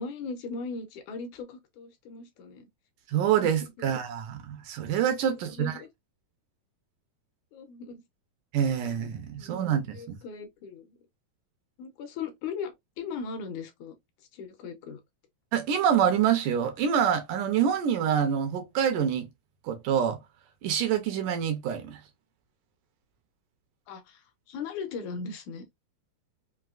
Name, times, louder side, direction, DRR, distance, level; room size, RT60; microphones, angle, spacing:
voice 1, 0.0-2.7 3.8-3.9 5.4-5.9 7.5-8.0 9.3-9.6 9.9-11.0 11.8-14.0 14.3-15.0 23.9-25.7, left 5 dB, 75° left, 1.8 m, -38 dB
voice 2, 3.1-5.8 8.5-10.2 15.5-19.3 19.6-20.2 20.6-22.0, right 8 dB, 75° right, 2.0 m, -26 dB
5.8 x 2.7 x 2.4 m
omnidirectional pair, 4.3 m